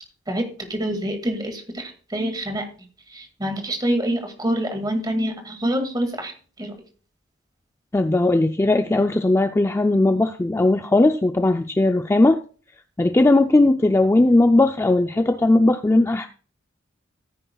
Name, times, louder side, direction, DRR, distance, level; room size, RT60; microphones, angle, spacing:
voice 1, 0.7-2.6 3.1-6.7, right 1 dB, 20° right, 5 dB, 2.1 m, -26 dB
voice 2, 7.9-12.4 13.0-16.3, left 2 dB, 15° left, 6 dB, 0.4 m, -18 dB
15.0 x 9.3 x 2.3 m, 0.39 s
head